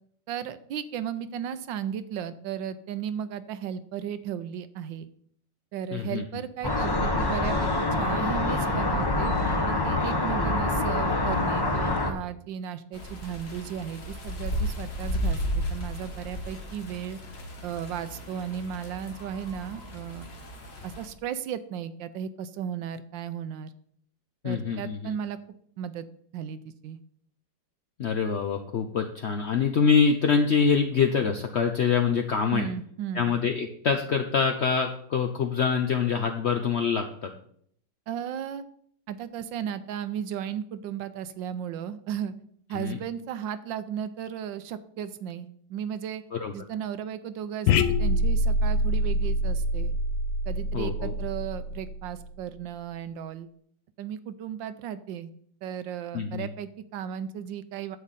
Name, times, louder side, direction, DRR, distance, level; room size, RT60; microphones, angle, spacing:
voice 1, 0.3-5.1 5.7-9.3 9.7-17.2 17.6-20.3 20.8-23.7 24.4-25.4 25.8-26.1 26.3-27.0 32.5-33.4 38.1-38.6 39.1-42.3 42.7-46.2 46.5-49.9 50.5-53.5 54.0-55.3 55.6-58.0, right 9 dB, 75° right, 13 dB, 1.3 m, -35 dB
voice 2, 5.9-6.2 24.4-25.1 28.0-32.7 33.1-37.3 42.7-43.0 46.3-46.5 50.7-51.1 56.1-56.5, left 6 dB, 70° left, 4 dB, 0.6 m, -25 dB
sound 1, 6.6-12.1, left 2 dB, 20° left, 0.6 m, -25 dB
sound 2, 12.9-21.1, equal, 35° left, 1.4 m, -34 dB
sound 3, 47.7-52.3, left 1 dB, 85° left, 1.4 m, -25 dB
9.8 x 7.9 x 4.1 m, 0.63 s
omnidirectional pair, 2.1 m